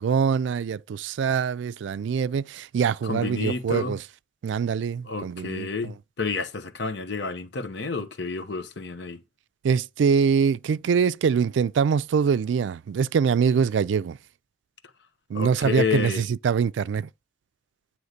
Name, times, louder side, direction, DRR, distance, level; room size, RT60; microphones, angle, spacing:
voice 1, 0.0-4.0 4.4-5.9 9.6-14.2 15.3-17.1, right 6 dB, 90° right, 0.3 m, -24 dB
voice 2, 3.0-4.0 5.0-9.2 15.3-16.2, left 4 dB, 65° left, 0.8 m, -30 dB
9.3 x 3.1 x 6.5 m
head